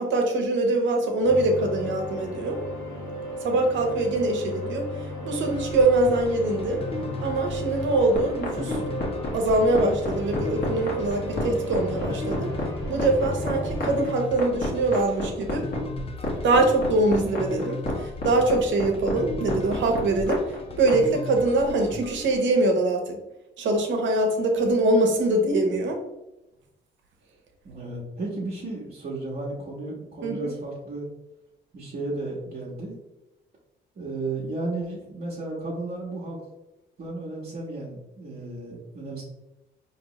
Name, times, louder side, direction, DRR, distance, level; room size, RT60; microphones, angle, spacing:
voice 1, 0.0-2.6 3.4-6.8 7.2-8.8 9.3-12.5 12.9-15.7 16.4-23.2 23.6-26.0 30.2-30.5, right 2 dB, 70° right, 3 dB, 1.0 m, -23 dB
sound 1, 1.2-14.0, equal, 90° left, 1.5 m, -34 dB
sound 2, 5.5-22.4, left 2 dB, 30° left, 0.5 m, -37 dB
sound 3, 8.1-21.0, left 2 dB, 45° left, 1.4 m, -30 dB
voice 2, 27.6-31.1 31.7-32.9 34.0-36.4 37.0-39.2, right 2 dB, 45° right, -6 dB, 1.1 m, -33 dB
4.4 x 3.0 x 3.0 m, 0.94 s
cardioid pair, 90°, 20 cm